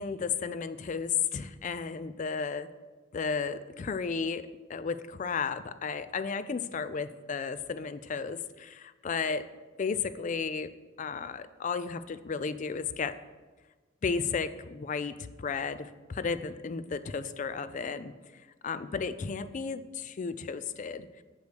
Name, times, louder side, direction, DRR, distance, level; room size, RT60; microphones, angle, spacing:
voice 1, 0.0-2.7 3.1-9.4 9.8-10.7 11.0-13.2 14.0-18.1 18.6-21.1, left 5 dB, 35° left, 13 dB, 0.3 m, -33 dB
8.0 x 5.2 x 6.3 m, 1.3 s
head